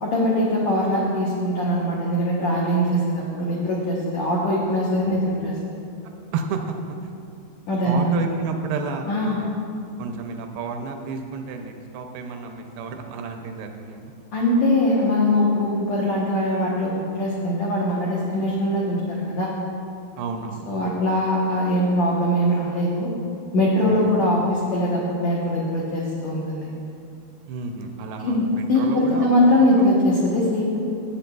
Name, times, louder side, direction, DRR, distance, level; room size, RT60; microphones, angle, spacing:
voice 1, 0.0-5.6 7.7-8.1 9.1-9.4 14.3-19.5 20.7-23.1 23.5-26.7 28.2-28.4 28.7-30.8, left 1 dB, 85° left, -5 dB, 1.6 m, -22 dB
voice 2, 6.3-7.1 7.8-9.5 10.0-14.1 20.2-20.7 23.8-24.1 27.5-29.5, right 5 dB, 80° right, 4 dB, 2.4 m, -31 dB
15.5 x 8.0 x 2.3 m, 2.5 s
omnidirectional pair, 4.8 m